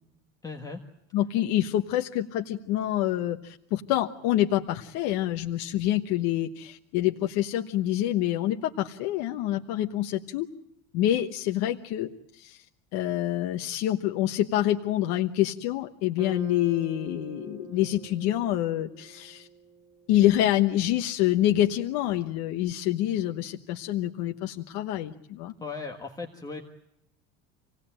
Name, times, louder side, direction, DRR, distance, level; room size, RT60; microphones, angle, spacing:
voice 1, 0.4-0.8 25.6-26.6, left 4 dB, 10° left, 1 dB, 1.6 m, -37 dB
voice 2, 1.1-10.5 10.9-12.1 12.4-12.6 12.9-19.5 20.1-25.5, left 13 dB, 60° left, 4 dB, 1.2 m, -26 dB
sound 1, 16.1-20.5, right 6 dB, 15° right, 1.8 m, -44 dB
27.5 x 18.0 x 8.9 m, 0.81 s
cardioid pair, 170°, 31 cm